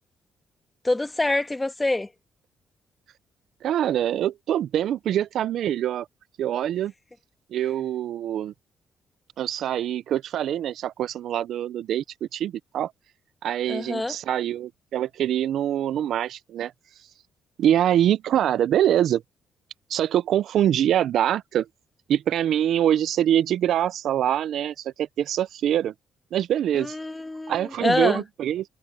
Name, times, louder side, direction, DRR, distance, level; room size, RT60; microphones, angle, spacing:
voice 1, 0.8-2.1 13.7-14.2 26.7-28.2, left 2 dB, 15° left, 1.8 m, -26 dB
voice 2, 3.6-6.1 6.4-6.9 7.5-8.5 9.4-12.9 13.4-16.7 17.6-19.2 19.9-21.7 22.1-25.9 26.3-27.0 27.5-28.6, right 11 dB, 75° right, 0.5 m, -24 dB
cardioid pair, 90°, 0 cm